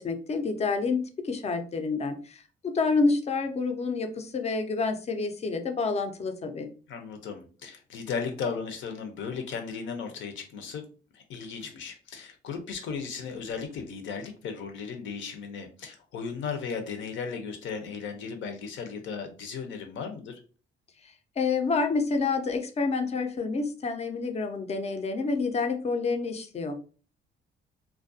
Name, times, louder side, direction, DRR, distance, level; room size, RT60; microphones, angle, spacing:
voice 1, 0.0-6.7 21.4-26.8, left 4 dB, 35° left, 7 dB, 0.5 m, -28 dB
voice 2, 6.9-10.8 11.1-20.4, left 5 dB, 75° left, 5 dB, 0.6 m, -36 dB
2.4 x 2.2 x 2.6 m, 0.37 s
cardioid pair, 90°, 20 cm